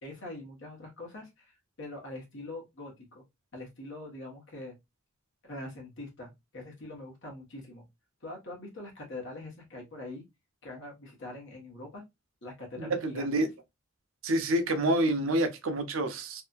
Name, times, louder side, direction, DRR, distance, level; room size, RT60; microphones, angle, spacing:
voice 1, 0.0-3.2 3.5-4.7 5.4-7.8 8.2-10.2 10.6-12.0 12.4-13.5, left 2 dB, 60° left, 1.1 m, -43 dB
voice 2, 12.8-13.5 14.2-16.4, right 1 dB, 65° right, 0.5 m, -28 dB
2.7 x 2.4 x 2.3 m
head